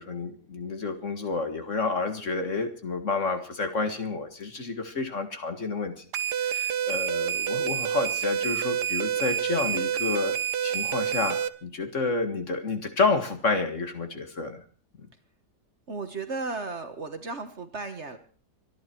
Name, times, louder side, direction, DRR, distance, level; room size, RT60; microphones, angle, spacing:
voice 1, 0.0-5.9 6.4-10.4 10.6-14.6, left 3 dB, 45° left, 7 dB, 2.0 m, -29 dB
sound 1, 6.1-11.5, right 9 dB, 75° right, 1.5 m, -28 dB
voice 2, 15.9-18.2, right 3 dB, 45° right, 8 dB, 1.5 m, -34 dB
25.5 x 11.0 x 4.5 m, 0.41 s
omnidirectional pair, 1.8 m